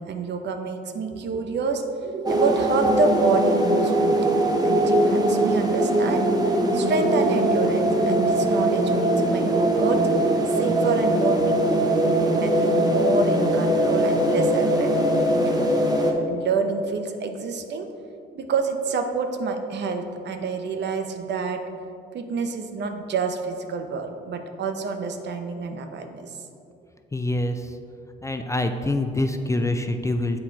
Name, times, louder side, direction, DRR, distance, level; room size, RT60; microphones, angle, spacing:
voice 1, 0.0-10.0 10.5-11.9 12.3-15.0 15.3-15.6 16.3-17.9 18.3-21.6 22.1-26.4, right 4 dB, 60° right, 6 dB, 0.7 m, -28 dB
sound 1, 2.3-16.1, right 1 dB, 20° right, 0.8 m, -21 dB
voice 2, 27.1-27.8 28.2-30.4, left 1 dB, 15° left, 7 dB, 0.4 m, -25 dB
7.7 x 4.3 x 4.6 m, 2.5 s
cardioid pair, 90°, 20 cm